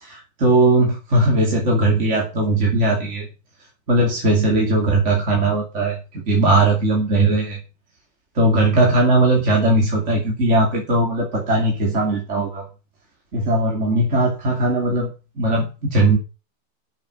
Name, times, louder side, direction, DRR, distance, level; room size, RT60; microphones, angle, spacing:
voice 1, 0.0-3.3 3.9-7.6 8.3-12.6 13.3-15.1 15.4-16.2, right 2 dB, 35° right, -1 dB, 3.0 m, -19 dB
8.9 x 7.8 x 6.5 m, 0.31 s
omnidirectional pair, 2.2 m